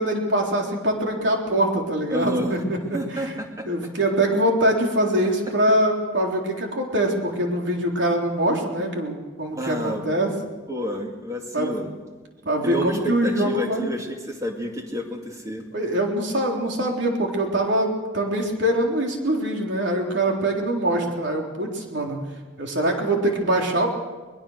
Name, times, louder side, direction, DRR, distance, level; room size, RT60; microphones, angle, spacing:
voice 1, 0.0-3.3 3.7-10.3 11.5-11.8 12.5-13.9 15.7-22.2 22.6-23.9, right 1 dB, 60° right, 1 dB, 3.9 m, -23 dB
voice 2, 2.1-2.6 2.9-3.7 9.6-10.0 10.7-11.9 12.4-15.6, equal, 15° right, 2 dB, 2.4 m, -30 dB
22.5 x 21.5 x 6.6 m, 1.3 s
head